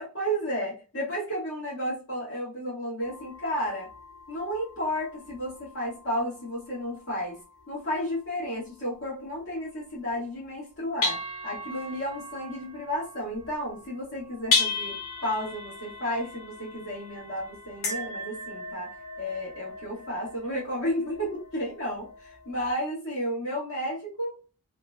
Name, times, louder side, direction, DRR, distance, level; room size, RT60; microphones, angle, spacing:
voice 1, 0.1-3.9 4.3-7.4 7.7-15.0 15.2-24.3, equal, 60° left, -8 dB, 1.3 m, -32 dB
sound 1, 3.0-10.6 11.0-22.7, left 3 dB, 80° left, 0.9 m, -36 dB
3.0 x 2.1 x 2.3 m, 0.33 s
head